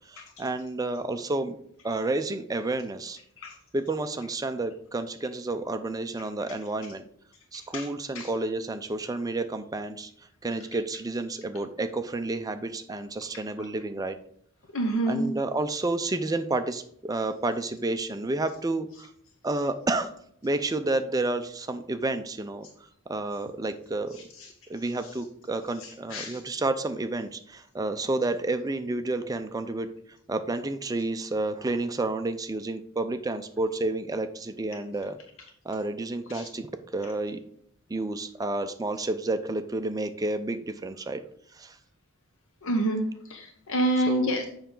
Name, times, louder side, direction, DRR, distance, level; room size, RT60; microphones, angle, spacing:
voice 1, 0.1-1.6 1.8-3.2 3.7-7.0 7.5-10.1 10.4-14.2 15.1-19.1 19.4-20.1 20.4-22.7 23.1-24.2 24.7-29.9 30.3-35.2 35.6-36.7 36.9-37.4 37.9-41.2 41.5-41.8 44.1-44.4, right 2 dB, 15° right, 8 dB, 0.4 m, -30 dB
voice 2, 14.7-15.3 24.4-24.5 25.8-26.4 36.3-36.5 42.6-43.0 43.3-44.5, right 1 dB, 60° left, 4 dB, 0.8 m, -27 dB
7.0 x 5.5 x 3.8 m, 0.69 s
head